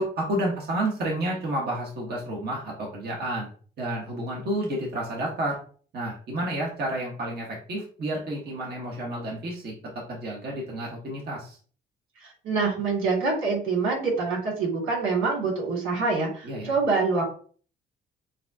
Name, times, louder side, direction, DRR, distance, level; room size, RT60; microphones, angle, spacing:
voice 1, 0.0-3.5 3.8-5.6 5.9-9.7 10.1-11.6 16.4-16.7, right 1 dB, 55° right, -2 dB, 1.4 m, -30 dB
voice 2, 12.2-17.2, right 4 dB, 90° right, -2 dB, 2.2 m, -25 dB
7.0 x 2.4 x 2.7 m, 0.43 s
cardioid pair, 90°, 20 cm